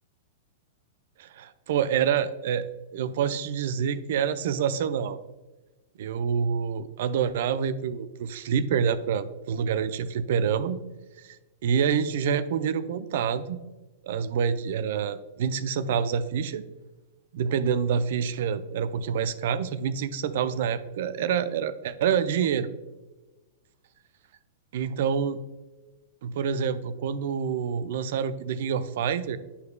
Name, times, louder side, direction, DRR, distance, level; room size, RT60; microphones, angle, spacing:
voice 1, 1.2-2.7 2.9-5.2 6.0-10.8 11.6-13.6 14.0-16.6 17.3-22.7 24.7-25.4 26.2-29.4, right 7 dB, 60° right, 13 dB, 0.5 m, -27 dB
11.5 x 4.2 x 2.2 m, 1.1 s
figure-of-eight pair, 100°, 0 cm